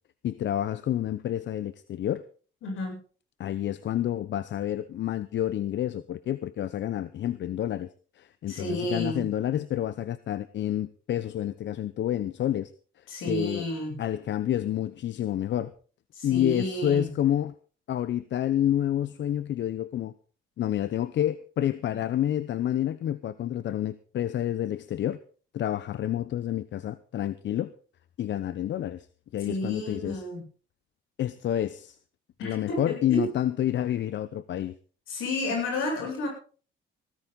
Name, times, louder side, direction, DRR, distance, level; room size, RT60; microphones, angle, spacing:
voice 1, 0.2-2.2 3.4-7.9 8.2-12.7 13.3-13.6 14.0-15.7 16.2-17.5 17.9-20.1 20.6-25.2 25.5-27.7 28.2-29.1 29.3-30.2 31.2-32.0 32.4-34.8, left 11 dB, 65° left, 15 dB, 0.8 m, -29 dB
voice 2, 2.6-3.0 8.5-9.2 13.1-14.0 16.1-17.1 29.4-30.4 32.4-33.2 35.1-36.3, left 1 dB, 85° left, 2 dB, 7.8 m, -31 dB
17.0 x 14.0 x 4.0 m, 0.39 s
cardioid pair, 90°, 20 cm